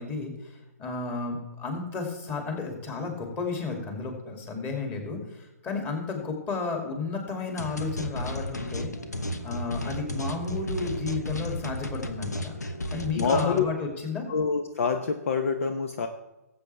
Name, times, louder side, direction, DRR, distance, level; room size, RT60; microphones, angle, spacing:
voice 1, 0.0-8.9 9.4-12.5 12.9-14.3, left 4 dB, 20° left, 2 dB, 2.6 m, -33 dB
sound 1, 7.6-13.6, left 1 dB, 80° left, 1.2 m, -33 dB
voice 2, 13.2-13.7 14.3-16.1, left 5 dB, 55° left, 7 dB, 0.8 m, -26 dB
18.5 x 8.0 x 3.4 m, 0.98 s
figure-of-eight pair, 125°, 9 cm